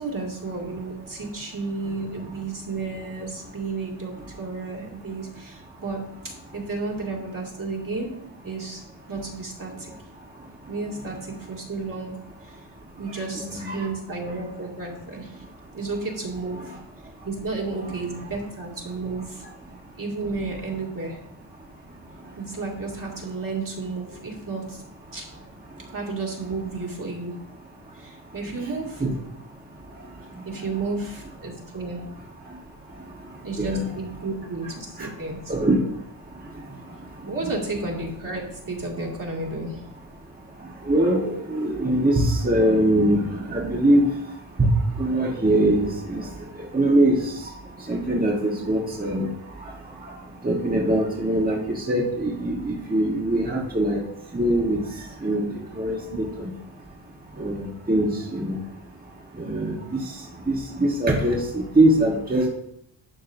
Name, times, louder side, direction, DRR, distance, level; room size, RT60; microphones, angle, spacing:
voice 1, 0.0-8.1 8.4-8.8 9.1-9.9 10.7-12.1 12.4-12.6 13.0-15.4 15.7-16.8 17.2-19.5 20.0-21.2 22.4-24.8 25.1-25.3 25.9-27.3 27.9-29.0 30.4-32.0 33.4-35.5 37.2-39.8 56.1-56.2 57.8-57.9 59.4-59.5, right 3 dB, 45° right, -2 dB, 2.3 m, -32 dB
voice 2, 13.2-13.9 29.0-29.1 33.6-33.8 35.5-35.8 40.9-44.0 44.6-44.7 45.0-46.3 46.7-47.2 47.9-49.3 50.4-54.0 54.3-54.8 55.2-55.5 55.8-56.5 57.4-57.6 57.9-58.6 59.4-60.0 60.5-62.5, right 1 dB, 20° right, -2 dB, 1.3 m, -22 dB
11.5 x 6.4 x 2.7 m, 0.74 s
wide cardioid pair, 110°, 46 cm